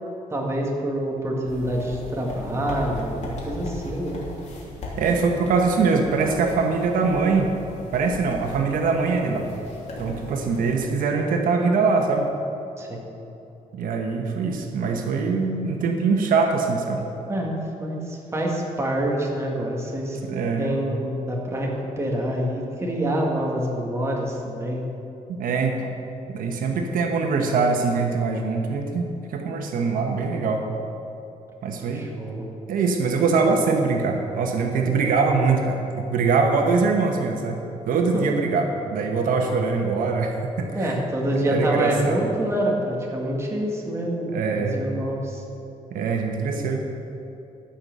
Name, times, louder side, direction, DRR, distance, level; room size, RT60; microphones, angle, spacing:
voice 1, 0.3-4.2 12.8-13.1 17.3-20.2 20.6-21.7 22.0-24.8 31.9-32.4 38.1-38.3 40.8-45.4, right 1 dB, 20° right, -2 dB, 2.0 m, -26 dB
sound 1, 1.5-10.6, left 2 dB, 55° left, 3.1 m, -38 dB
voice 2, 5.0-7.5 7.9-9.5 10.0-12.3 13.7-17.0 20.2-20.7 25.4-25.9 26.3-30.7 31.6-32.1 32.7-37.6 37.9-40.9 41.5-42.2 44.3-44.8 45.9-46.8, right 4 dB, 85° right, 2 dB, 1.2 m, -23 dB
14.5 x 5.8 x 6.8 m, 2.9 s
cardioid pair, 130°, 14 cm